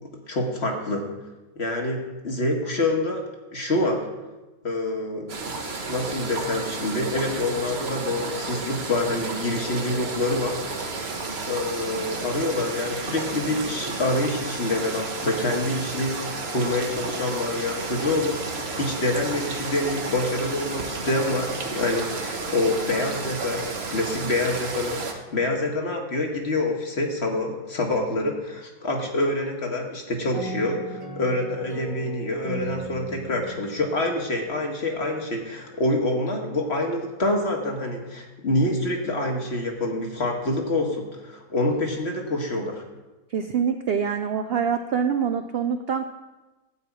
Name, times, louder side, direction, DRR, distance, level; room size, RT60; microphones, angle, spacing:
voice 1, 0.3-1.1 1.6-3.2 3.5-4.1 4.6-5.4 5.9-10.9 11.5-42.8, left 2 dB, 45° left, 2 dB, 1.7 m, -26 dB
sound 1, 5.3-25.1, right 3 dB, 45° right, 1.3 m, -32 dB
sound 2, 30.3-35.0, right 2 dB, 20° right, 1.1 m, -38 dB
voice 2, 43.3-46.1, right 7 dB, 70° right, 7 dB, 0.5 m, -25 dB
13.0 x 4.7 x 8.5 m, 1.1 s
omnidirectional pair, 1.7 m